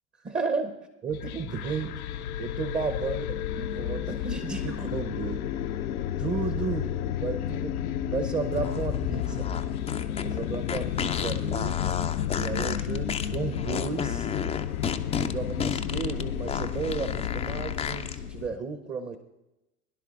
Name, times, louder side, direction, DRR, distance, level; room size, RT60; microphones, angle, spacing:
voice 1, 0.2-2.0 2.4-5.4 6.2-7.8 8.1-9.5 10.2-11.8 12.3-14.3 15.1-19.2, right 5 dB, 20° right, 7 dB, 0.8 m, -33 dB
sound 1, 1.1-18.5, left 10 dB, 75° left, 0.7 m, -32 dB
sound 2, 8.5-18.2, left 7 dB, 15° left, 0.4 m, -33 dB
21.0 x 11.0 x 2.5 m, 0.94 s
figure-of-eight pair, 80°, 43 cm